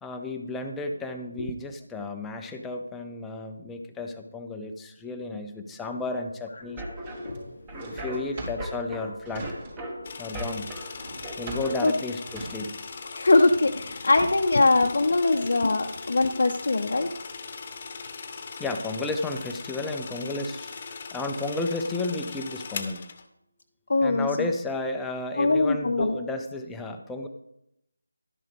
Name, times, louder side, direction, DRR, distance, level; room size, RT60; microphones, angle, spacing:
voice 1, 0.0-6.8 7.7-9.5 10.2-10.7 11.4-12.8 18.3-20.7 21.1-23.0 24.0-27.3, left 2 dB, 5° left, 3 dB, 0.6 m, -33 dB
sound 1, 6.6-11.8, right 1 dB, 15° right, 1.2 m, -38 dB
Drawer open or close, 7.0-10.1 10.3-14.6, right 1 dB, 30° right, 3.3 m, -42 dB
sound 2, 10.0-23.2, left 5 dB, 35° left, 1.0 m, -39 dB
voice 2, 13.1-17.1 23.9-24.5 25.4-26.2, left 2 dB, 60° left, 3 dB, 0.7 m, -22 dB
12.0 x 10.5 x 3.5 m, 0.80 s
figure-of-eight pair, 165°, 0 cm